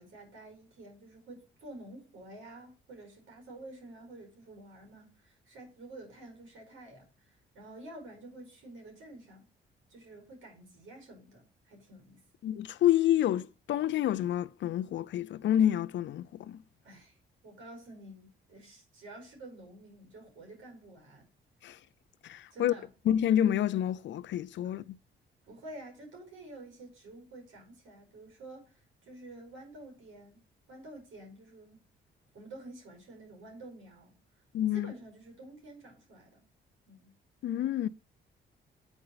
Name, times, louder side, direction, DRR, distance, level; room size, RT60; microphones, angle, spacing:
voice 1, 0.0-9.5 9.9-12.2 16.8-17.2 17.4-21.3 22.5-22.9 24.6-24.8 25.4-30.4 30.7-31.9 32.3-34.2 34.7-36.5 36.9-37.1, right 2 dB, 80° right, 5.3 m, -50 dB
voice 2, 12.4-16.6 21.6-21.8 22.2-22.7 23.1-25.0 34.5-34.9 37.4-37.9, left 11 dB, 65° left, 0.6 m, -28 dB
8.3 x 4.8 x 4.9 m
cardioid pair, 90°, 20 cm